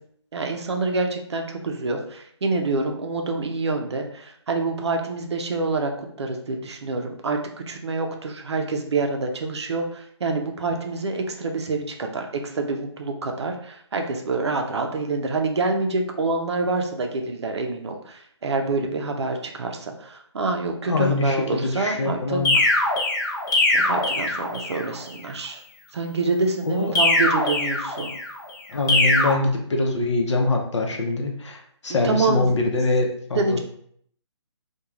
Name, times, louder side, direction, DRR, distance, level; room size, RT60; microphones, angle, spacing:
voice 1, 0.3-5.9 6.2-22.8 23.7-25.6 25.9-28.1 32.0-32.5 33.3-33.6, right 3 dB, 65° right, 3 dB, 0.5 m, -27 dB
voice 2, 20.9-22.6 26.7-26.9 28.7-33.6, left 2 dB, 80° left, 1 dB, 0.7 m, -24 dB
sound 1, 22.4-24.9 26.9-28.3 28.9-29.3, left 2 dB, 40° left, 0.6 m, -21 dB
3.0 x 2.3 x 2.3 m, 0.64 s
hypercardioid pair, 170°, 15 cm